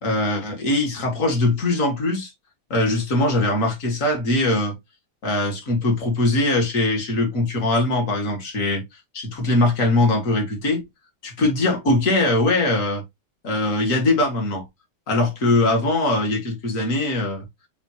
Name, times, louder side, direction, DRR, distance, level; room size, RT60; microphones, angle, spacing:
voice 1, 0.0-2.3 2.7-4.8 5.2-8.8 9.1-10.8 11.2-13.0 13.4-14.6 15.1-17.4, left 2 dB, 45° left, 1.7 m, -21 dB
6.9 x 2.6 x 2.9 m
omnidirectional pair, 2.3 m